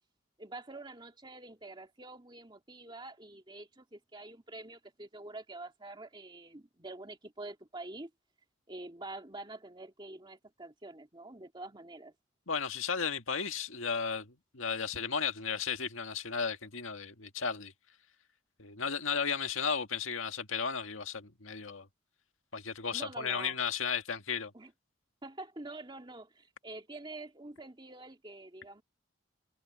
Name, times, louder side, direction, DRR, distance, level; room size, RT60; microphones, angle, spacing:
voice 1, 0.4-8.1 8.7-12.1 22.9-23.6 24.5-24.7 25.2-28.8, right 2 dB, 25° right, 2.2 m, -46 dB
voice 2, 12.5-17.7 18.6-21.9 22.5-24.5, left 6 dB, 85° left, 1.9 m, -34 dB
head